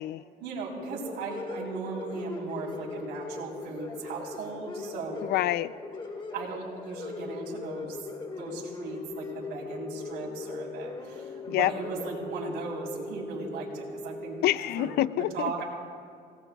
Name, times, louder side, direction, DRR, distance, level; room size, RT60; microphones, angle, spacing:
voice 1, 0.4-5.2 6.3-14.4 14.8-15.6, right 4 dB, 80° right, -3 dB, 3.6 m, -37 dB
sound 1, 0.8-14.5, left 3 dB, 30° left, 1.7 m, -40 dB
voice 2, 5.2-5.7 11.5-11.7 14.4-15.5, left 14 dB, 70° left, 17 dB, 0.4 m, -27 dB
28.0 x 18.5 x 2.3 m, 2.2 s
cardioid pair, 110°, 17 cm